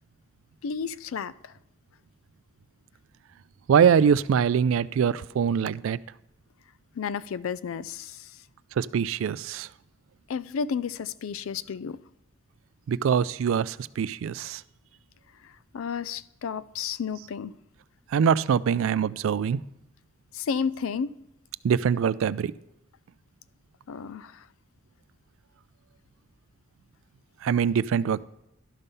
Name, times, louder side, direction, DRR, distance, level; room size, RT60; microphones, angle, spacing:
voice 1, 0.6-1.5 6.9-8.4 10.3-12.0 15.4-17.5 20.3-21.1 23.9-24.5, left 6 dB, 80° left, 0.4 m, -32 dB
voice 2, 3.7-6.0 8.8-9.7 12.9-14.6 18.1-19.6 21.6-22.5 27.4-28.2, right 7 dB, 75° right, 0.3 m, -23 dB
12.0 x 5.4 x 5.5 m
head